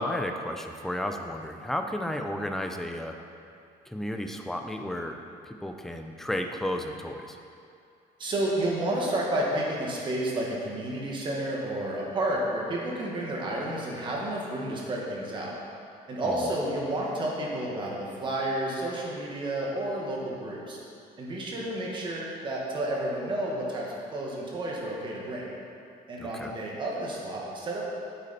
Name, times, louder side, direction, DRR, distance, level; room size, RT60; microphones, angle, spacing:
voice 1, 0.0-3.2 3.9-5.2 5.4-7.4 16.2-16.3 26.2-26.5, left 1 dB, ahead, 4 dB, 0.4 m, -33 dB
voice 2, 8.2-15.6 16.1-20.8 21.2-25.5 26.1-27.9, right 1 dB, 30° right, -3 dB, 1.5 m, -31 dB
8.3 x 8.2 x 4.2 m, 2.4 s
cardioid pair, 175°, 17 cm